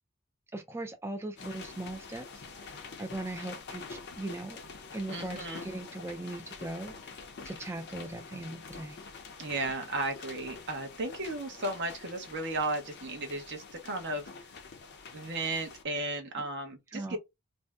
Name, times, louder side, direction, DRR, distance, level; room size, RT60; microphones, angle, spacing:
voice 1, 0.5-2.3 2.6-4.6 4.9-9.0 11.2-11.3 16.9-17.2, right 2 dB, 10° right, 0.3 m, -39 dB
sound 1, 1.4-15.8, left 4 dB, 50° left, 0.6 m, -46 dB
voice 2, 5.1-5.6 9.4-14.3 15.1-17.2, right 2 dB, 50° right, 0.8 m, -35 dB
2.6 x 2.1 x 3.4 m
head